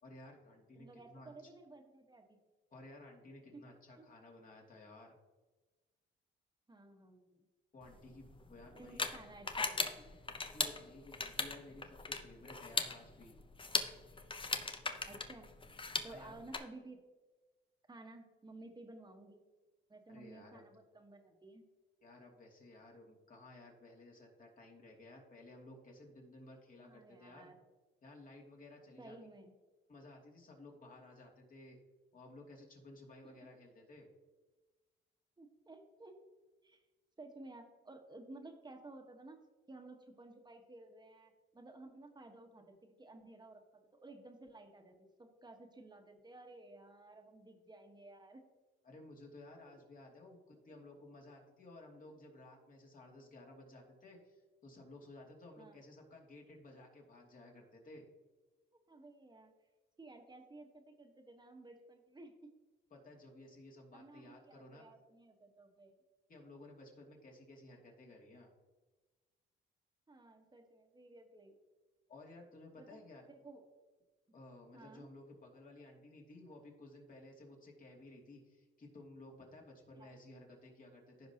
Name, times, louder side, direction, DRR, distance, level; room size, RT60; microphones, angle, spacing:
voice 1, 0.0-1.3 2.7-5.2 7.7-9.0 10.5-13.4 16.1-16.5 20.1-20.6 22.0-27.5 28.0-29.2 29.9-31.8 32.1-34.1 48.8-58.0 62.9-64.8 66.3-68.5 72.1-73.2 74.3-81.3, left 2 dB, 45° left, 0 dB, 2.5 m, -56 dB
voice 2, 0.8-2.4 3.5-3.6 4.0-4.1 6.7-7.4 8.7-10.2 15.1-15.5 16.0-17.0 17.9-19.4 19.9-21.6 26.8-27.6 29.0-29.5 33.2-33.5 35.4-36.2 36.6-36.8 37.2-39.4 39.7-43.6 44.0-48.4 50.7-50.8 55.6-55.8 58.9-59.5 60.0-62.5 63.9-66.0 70.1-71.6 72.8-73.0 73.3-73.6 74.7-75.1 79.9-80.1, right 2 dB, 20° right, 3 dB, 1.5 m, -55 dB
sound 1, 7.9-16.6, left 4 dB, 25° left, 0.9 m, -39 dB
15.0 x 5.2 x 2.9 m, 1.2 s
cardioid pair, 90°, 20 cm